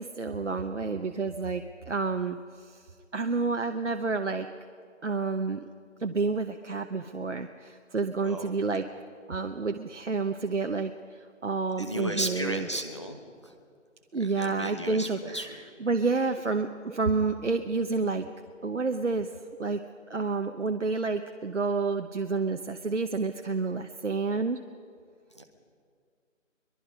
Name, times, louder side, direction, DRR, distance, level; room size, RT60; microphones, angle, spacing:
voice 1, 0.0-2.8 3.1-4.5 5.0-5.7 6.0-8.9 9.3-12.7 14.1-15.4 15.8-18.3 18.6-19.3 19.6-19.8 20.1-24.6, right 4 dB, 65° right, 6 dB, 1.0 m, -29 dB
voice 2, 8.2-8.9 11.8-13.5 14.2-15.6 25.3-25.4, right 1 dB, 20° left, 4 dB, 1.1 m, -35 dB
23.0 x 21.5 x 5.3 m, 2.2 s
figure-of-eight pair, 180°, 38 cm